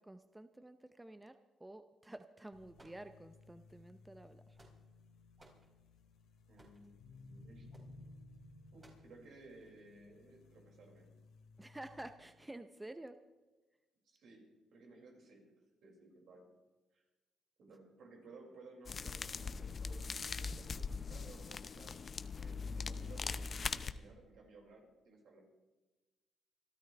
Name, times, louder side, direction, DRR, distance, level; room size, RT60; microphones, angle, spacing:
voice 1, 0.0-4.6 11.6-13.2, right 1 dB, 10° right, 9 dB, 0.7 m, -51 dB
sound 1, 2.5-12.1, left 2 dB, 90° left, 2.4 m, -59 dB
sound 2, 2.7-3.5 4.3-5.0 5.4-5.7 6.6-6.9 7.7-7.9 8.8-9.1, right 2 dB, 30° right, 4.7 m, -62 dB
voice 2, 6.5-7.9 8.7-11.1 14.0-15.5 15.8-16.5 16.9-17.0 17.6-20.1 20.4-22.0 22.3-25.4, right 3 dB, 70° right, -1 dB, 5.7 m, -58 dB
sound 3, 18.9-23.9, left 5 dB, 40° left, 0.7 m, -41 dB
26.5 x 13.0 x 3.4 m, 1.2 s
cardioid pair, 90°, 0 cm